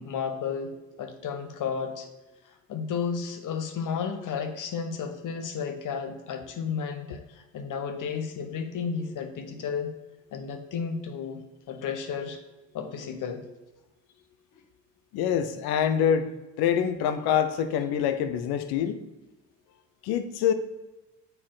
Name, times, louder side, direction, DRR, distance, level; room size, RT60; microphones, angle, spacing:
voice 1, 0.0-2.1 2.7-10.0 10.3-11.4 11.7-12.4 12.7-13.4, left 6 dB, 55° left, 7 dB, 1.0 m, -33 dB
voice 2, 15.1-16.3 16.6-19.0 20.0-20.5, left 8 dB, 70° left, 10 dB, 0.7 m, -25 dB
6.7 x 4.2 x 3.9 m, 1.1 s
supercardioid pair, 70°, 39 cm